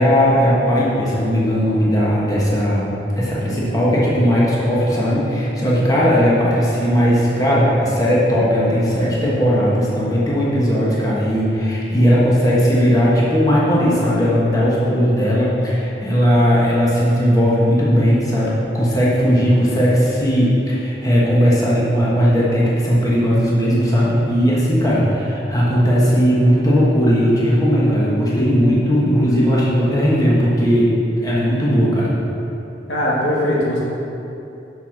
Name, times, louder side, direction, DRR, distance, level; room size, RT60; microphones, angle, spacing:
voice 1, 0.0-30.9 31.2-32.1, equal, 20° left, -7 dB, 1.3 m, -17 dB
voice 2, 32.9-33.8, left 1 dB, 90° left, -5 dB, 1.7 m, -19 dB
5.7 x 5.6 x 5.9 m, 2.8 s
head